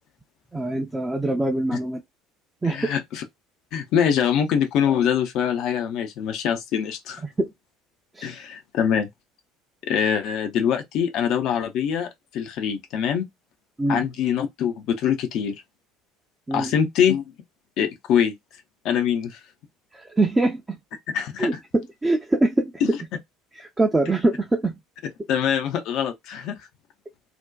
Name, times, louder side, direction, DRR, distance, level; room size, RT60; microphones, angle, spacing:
voice 1, 0.5-2.0 2.6-2.9 7.2-7.5 8.2-8.3 13.8-14.1 16.5-16.7 19.9-20.8 21.4-21.5 22.0-22.7 23.5-24.7, right 2 dB, 15° right, 0.5 m, -23 dB
voice 2, 2.6-3.2 3.7-7.2 8.2-9.1 9.9-13.2 13.9-15.6 16.5-17.3 17.8-18.4 18.8-19.4 21.1-21.5 22.8-22.9 25.3-26.6, left 8 dB, 50° left, 0.5 m, -24 dB
2.5 x 2.1 x 2.2 m
figure-of-eight pair, 60°, 0 cm